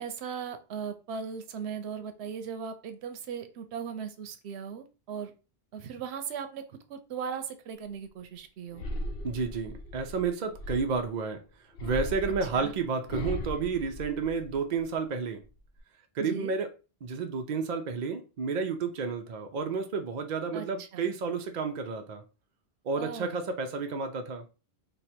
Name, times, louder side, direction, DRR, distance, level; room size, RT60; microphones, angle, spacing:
voice 1, 0.0-5.3 5.7-6.6 6.9-8.8 12.5-12.7 16.2-16.5 20.5-21.1 23.0-23.4, right 7 dB, 90° right, 0.9 m, -38 dB
sound 1, 8.7-11.1 11.7-14.8 15.2-15.8, left 1 dB, 75° left, 0.9 m, -38 dB
voice 2, 9.2-11.4 11.8-15.4 16.1-16.7 17.0-22.2 22.8-24.4, right 5 dB, 50° right, 0.6 m, -31 dB
3.2 x 2.2 x 4.2 m
omnidirectional pair, 1.1 m